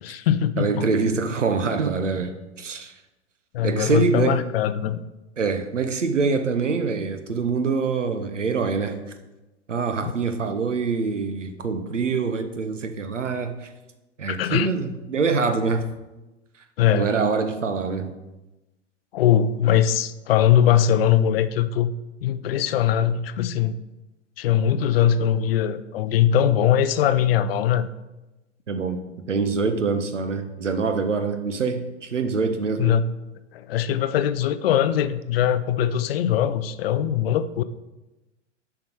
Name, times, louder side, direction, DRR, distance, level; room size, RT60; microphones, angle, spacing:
voice 1, 0.0-0.9 3.5-5.0 10.0-10.1 14.3-14.7 16.8-17.1 19.1-21.9 22.2-23.8 24.4-27.9 32.8-33.1 33.5-37.6, left 10 dB, 55° left, 13 dB, 0.5 m, -21 dB
voice 2, 0.6-2.3 2.6-2.9 3.6-4.4 5.4-9.0 9.7-13.7 14.2-15.8 16.9-18.1 28.7-29.0 29.3-33.0, right 4 dB, 85° right, 8 dB, 0.8 m, -25 dB
7.3 x 4.6 x 4.5 m, 1.0 s
figure-of-eight pair, 100°, 36 cm